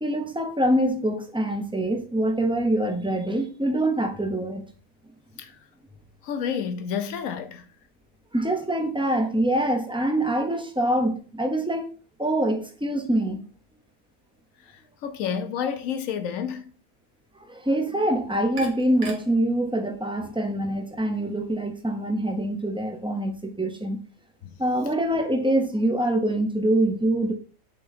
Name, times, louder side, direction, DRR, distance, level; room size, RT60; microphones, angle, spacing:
voice 1, 0.0-4.6 8.3-11.9 12.2-13.4 17.4-24.0 24.6-27.3, right 1 dB, 5° right, 0.4 m, -25 dB
voice 2, 6.2-7.6 15.0-16.7 24.4-24.5, left 7 dB, 70° left, 1.1 m, -30 dB
sound 1, 18.0-23.1, right 3 dB, 70° right, 1.7 m, -47 dB
6.6 x 3.8 x 4.1 m
omnidirectional pair, 1.5 m